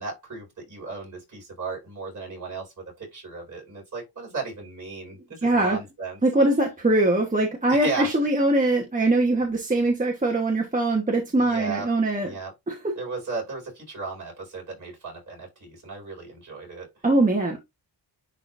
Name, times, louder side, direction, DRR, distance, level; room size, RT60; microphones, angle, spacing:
voice 1, 0.0-6.2 7.7-8.1 11.3-11.9 12.2-12.5 12.9-16.9, right 4 dB, 45° right, 4.9 m, -35 dB
voice 2, 5.4-5.8 6.2-12.3 12.7-12.8 17.0-17.6, right 2 dB, 20° right, 1.2 m, -22 dB
10.5 x 3.8 x 2.6 m
wide cardioid pair, 160°, 42 cm